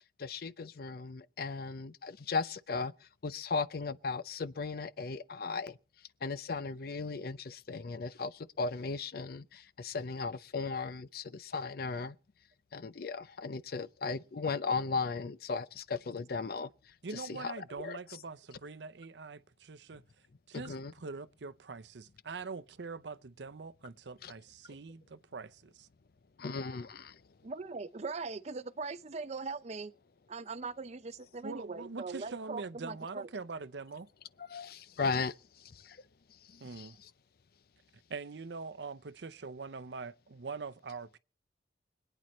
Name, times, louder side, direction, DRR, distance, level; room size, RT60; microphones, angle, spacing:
voice 1, 0.2-2.9 3.2-5.8 6.2-12.2 12.7-16.7 17.1-18.0 20.5-20.9 24.2-24.3 26.4-27.2 34.5-35.3 35.6-36.0 36.5-36.9, left 4 dB, 55° left, 0.5 m, -36 dB
voice 2, 17.0-20.0 20.5-25.9 31.4-34.1 36.6-37.0 38.1-41.2, right 4 dB, 75° right, 0.7 m, -43 dB
voice 3, 27.4-29.9 30.3-33.3, right 4 dB, 40° right, 0.6 m, -40 dB
25.5 x 9.0 x 3.1 m
head